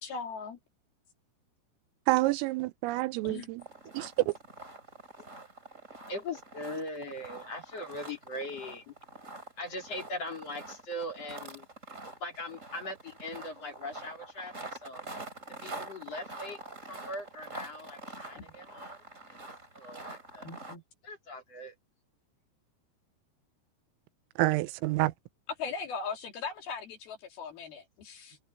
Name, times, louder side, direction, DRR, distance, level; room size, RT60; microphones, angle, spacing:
voice 1, 0.0-0.6 3.2-3.5 18.4-18.5 20.4-20.8 25.6-28.4, left 5 dB, 55° left, 3.6 m, -39 dB
voice 2, 2.1-3.6 3.9-4.3 24.4-25.1, right 19 dB, 85° right, 3.4 m, -28 dB
sound 1, 3.6-20.8, right 2 dB, 15° right, 3.2 m, -46 dB
voice 3, 6.1-8.8 9.6-11.7 12.2-14.5 14.8-15.0 15.5-16.6 16.9-19.0 19.3-19.4 19.7-20.5 21.0-21.7, left 1 dB, 35° left, 4.1 m, -40 dB
omnidirectional pair, 5.9 m